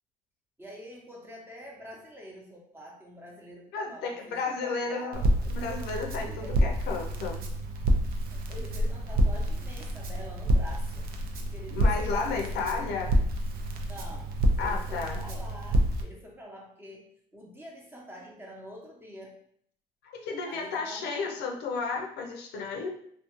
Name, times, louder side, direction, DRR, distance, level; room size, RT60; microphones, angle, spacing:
voice 1, 0.6-5.4 6.3-6.6 8.2-11.1 11.4-12.9 13.8-17.1 17.3-19.4 20.4-21.4, equal, 15° right, -2 dB, 0.7 m, -46 dB
voice 2, 3.7-7.4 11.7-13.1 14.6-15.2 20.0-22.9, left 4 dB, 80° left, 1 dB, 0.5 m, -33 dB
Crackle, 5.1-16.0, right 1 dB, 60° right, 0.5 m, -28 dB
2.4 x 2.3 x 2.9 m, 0.65 s
cardioid pair, 110°, 17 cm